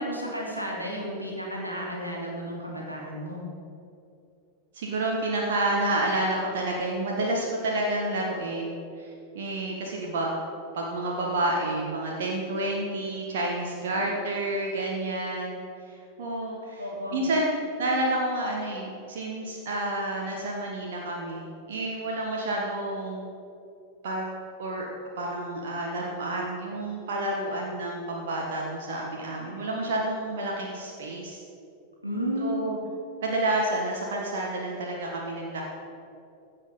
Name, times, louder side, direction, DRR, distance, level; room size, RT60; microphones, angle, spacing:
voice 1, 0.0-3.4 15.1-15.2 16.8-17.2 32.0-32.8, equal, 90° right, -3 dB, 2.3 m, -32 dB
voice 2, 4.7-10.4 10.7-16.9 17.1-17.5 17.8-23.3 24.0-24.2 24.6-24.9 25.2-31.4 32.4-32.8 33.2-35.6, right 1 dB, 60° right, -2 dB, 1.5 m, -29 dB
15.5 x 5.8 x 5.5 m, 2.5 s
figure-of-eight pair, 90°, 0 cm